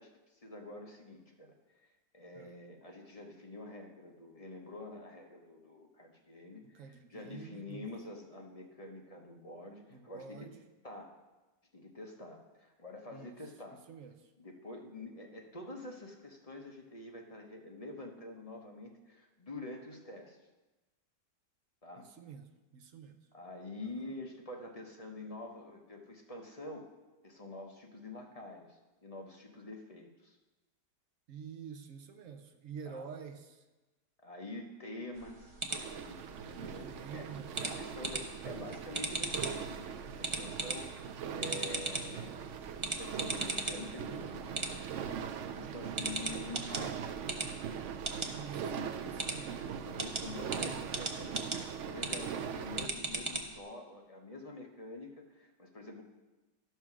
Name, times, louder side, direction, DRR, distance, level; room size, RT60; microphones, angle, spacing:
voice 1, 0.0-1.9 2.1-10.5 10.8-11.1 11.7-13.8 14.4-20.4 21.8-22.1 23.3-26.9 27.2-30.4 32.8-33.1 34.2-37.3 37.6-42.5 42.8-44.9 45.5-47.1 48.6-49.3 49.8-56.0, left 2 dB, 30° left, 1 dB, 0.7 m, -47 dB
voice 2, 6.6-7.9 9.9-10.6 13.1-13.3 13.7-14.3 22.0-23.2 23.8-24.2 31.3-33.6 36.8-37.7 46.3-46.8 48.3-48.8 49.0-49.5 50.3-51.0, right 6 dB, 60° right, 7 dB, 0.9 m, -48 dB
sound 1, 35.2-53.6, right 2 dB, 45° right, 0.3 m, -40 dB
sound 2, 35.7-52.9, right 7 dB, 90° right, 0.6 m, -41 dB
12.5 x 5.7 x 6.0 m, 1.1 s
omnidirectional pair, 1.9 m